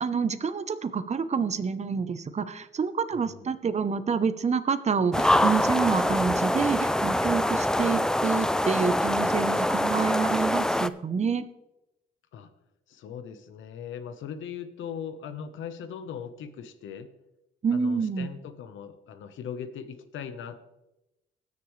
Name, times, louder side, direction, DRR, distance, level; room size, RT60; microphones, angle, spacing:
voice 1, 0.0-11.5 17.6-18.3, right 5 dB, 35° right, 12 dB, 0.9 m, -28 dB
voice 2, 3.1-3.5 12.3-12.5 12.9-17.1 17.7-20.7, left 7 dB, 75° left, 9 dB, 1.1 m, -39 dB
sound 1, 5.1-10.9, left 1 dB, 5° left, 0.4 m, -24 dB
20.0 x 6.9 x 3.3 m, 0.92 s
cardioid pair, 90°, 20 cm